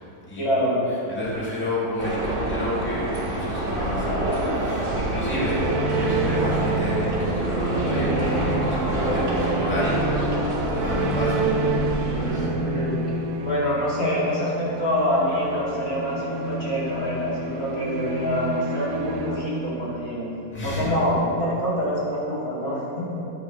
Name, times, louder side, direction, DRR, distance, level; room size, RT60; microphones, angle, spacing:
voice 1, 0.4-0.8 12.4-13.0 13.4-20.3 20.6-23.2, equal, 60° left, -8 dB, 2.9 m, -26 dB
voice 2, 1.1-10.3 10.7-11.5 20.5-21.0, left 1 dB, 5° left, -9 dB, 2.2 m, -30 dB
sound 1, 2.0-12.5, right 1 dB, 50° right, 2.1 m, -27 dB
sound 2, 5.0-20.2, right 2 dB, 75° right, 1.3 m, -29 dB
14.0 x 8.8 x 3.1 m, 3.0 s
omnidirectional pair, 1.7 m